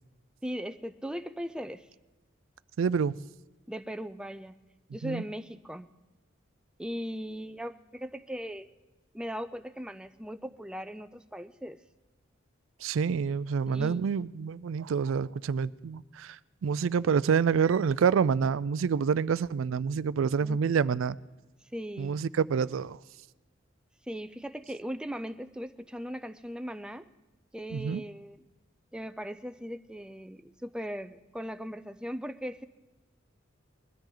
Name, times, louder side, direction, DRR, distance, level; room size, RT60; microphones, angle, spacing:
voice 1, 0.4-1.9 3.7-4.5 4.9-5.9 6.8-8.7 9.1-11.8 13.7-14.1 20.4-20.6 21.7-22.2 24.1-27.0 27.5-28.4 28.9-32.7, equal, 5° right, 0.4 m, -38 dB
voice 2, 2.8-3.2 5.0-5.2 12.8-21.2 22.0-23.0 27.7-28.0, right 6 dB, 80° right, 0.4 m, -27 dB
21.0 x 13.0 x 3.9 m
head